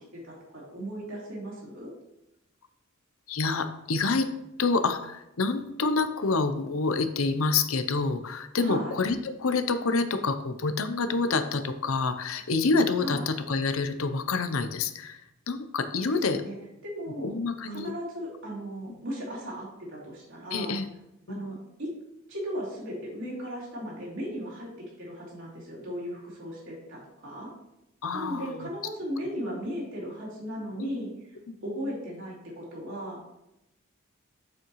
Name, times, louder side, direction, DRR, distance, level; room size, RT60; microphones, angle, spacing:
voice 1, 0.1-1.9 8.6-8.9 13.0-13.2 16.2-16.6 16.8-17.3 17.7-20.7 21.3-21.9 22.3-24.7 25.0-27.5 28.1-31.1 31.6-33.2, equal, 60° right, -5 dB, 3.1 m, -36 dB
voice 2, 3.3-4.3 4.6-15.2 15.5-16.4 17.2-17.9 18.9-19.0 20.5-20.9 21.3-21.4 28.0-28.5 30.8-31.0 31.5-31.6, left 3 dB, 70° left, 9 dB, 0.7 m, -27 dB
7.5 x 7.3 x 3.1 m, 0.88 s
head